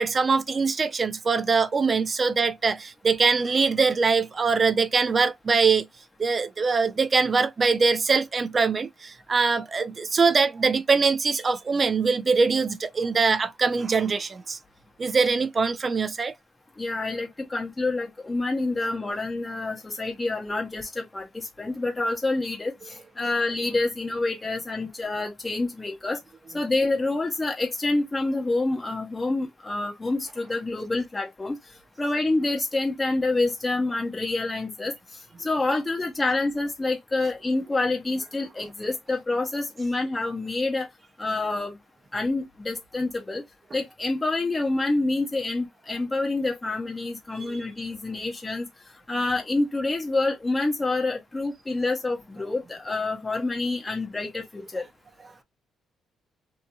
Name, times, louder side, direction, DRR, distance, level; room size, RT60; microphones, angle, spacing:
voice 1, 0.0-5.9 6.2-14.6 15.0-16.3 47.4-47.6, right 4 dB, 35° right, 0.4 m, -23 dB
voice 2, 16.8-26.2 26.5-31.5 32.0-34.9 35.4-40.9 41.2-41.8 42.1-43.4 43.7-48.7 49.1-54.8, left 2 dB, 20° left, 0.7 m, -27 dB
2.8 x 2.6 x 2.2 m
cardioid pair, 90°, 0 cm